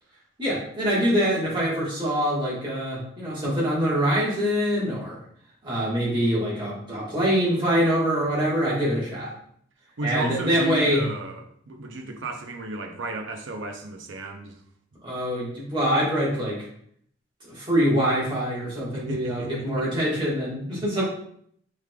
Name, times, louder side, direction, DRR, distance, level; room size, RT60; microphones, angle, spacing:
voice 1, 0.4-5.2 5.6-9.3 10.0-11.1 15.0-16.7 17.4-21.0, equal, 25° right, -6 dB, 1.4 m, -24 dB
voice 2, 10.0-14.6 18.9-19.9, right 2 dB, 85° right, 5 dB, 0.6 m, -33 dB
4.9 x 3.2 x 2.3 m, 0.67 s
head